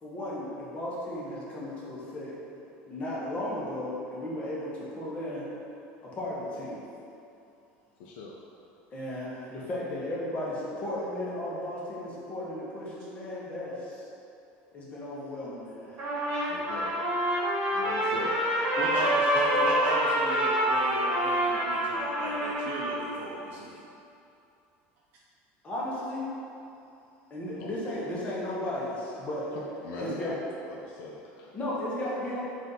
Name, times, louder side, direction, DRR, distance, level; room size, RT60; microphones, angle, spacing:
voice 1, 0.0-2.3 2.8-5.5 6.0-6.8 8.9-14.0 14.7-16.0 25.6-26.2 27.3-29.5 29.9-30.3 31.5-32.4, left 1 dB, 25° left, -6 dB, 0.9 m, -35 dB
voice 2, 8.0-8.3 16.5-16.9 17.7-18.5 27.6-27.7 29.8-30.3 30.7-31.5, left 3 dB, 65° left, -3 dB, 0.5 m, -40 dB
Trumpet, 16.0-23.1, equal, 40° right, 1.2 m, -27 dB
voice 3, 18.8-23.8, right 2 dB, 55° right, -5 dB, 0.5 m, -33 dB
4.1 x 2.5 x 3.9 m, 2.7 s
cardioid pair, 150°, 5 cm